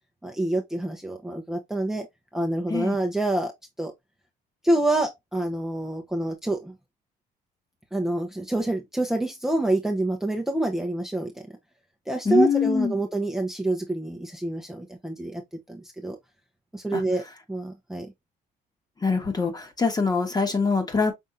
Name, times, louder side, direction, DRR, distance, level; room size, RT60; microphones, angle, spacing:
voice 1, 0.2-2.1 2.3-3.5 3.8-3.9 4.6-6.7 7.9-11.3 12.1-15.4 15.7-16.2 16.7-17.2 17.5-18.1, right 2 dB, 5° right, 0.8 m, -27 dB
voice 2, 12.2-13.0 16.9-17.0 19.0-21.1, left 4 dB, 25° left, 1.4 m, -24 dB
5.6 x 3.5 x 2.5 m
cardioid pair, 110°, 17 cm